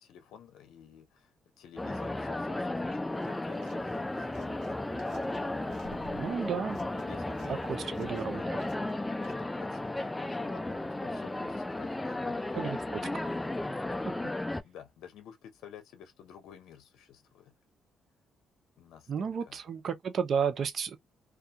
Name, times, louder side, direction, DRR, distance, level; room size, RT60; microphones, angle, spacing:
voice 1, 0.0-4.7 6.2-6.6 7.0-8.4 9.0-13.2 14.6-17.5 18.8-19.6, left 9 dB, 85° left, 0.6 m, -52 dB
sound 1, 1.8-14.6, left 2 dB, 15° left, 0.3 m, -34 dB
sound 2, 3.1-8.4, right 8 dB, 35° right, 0.9 m, -53 dB
sound 3, 3.1-3.3 3.6-3.9 4.3-5.4 5.7-8.3 8.6-8.9 9.2-9.3, right 1 dB, 85° right, 1.2 m, -54 dB
voice 2, 6.1-6.8 7.5-8.4 12.5-12.8 13.2-13.3 19.1-21.0, right 7 dB, 55° right, 0.6 m, -32 dB
2.3 x 2.2 x 2.7 m
cardioid pair, 90°, 0 cm